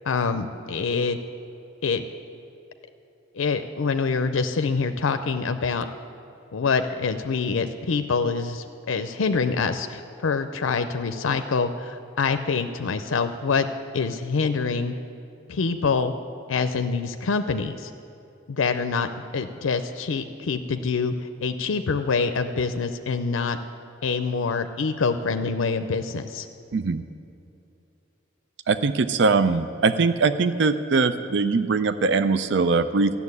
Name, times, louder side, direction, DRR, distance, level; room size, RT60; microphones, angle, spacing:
voice 1, 0.1-1.2 1.8-2.0 3.3-5.9 6.5-13.7 13.9-14.9 15.5-16.1 16.5-17.9 18.5-21.1 21.4-23.6 24.0-26.5, left 4 dB, 85° left, 8 dB, 0.5 m, -25 dB
voice 2, 26.7-27.0 28.7-33.2, right 4 dB, 60° right, 11 dB, 0.4 m, -21 dB
13.0 x 7.1 x 9.6 m, 2.7 s
head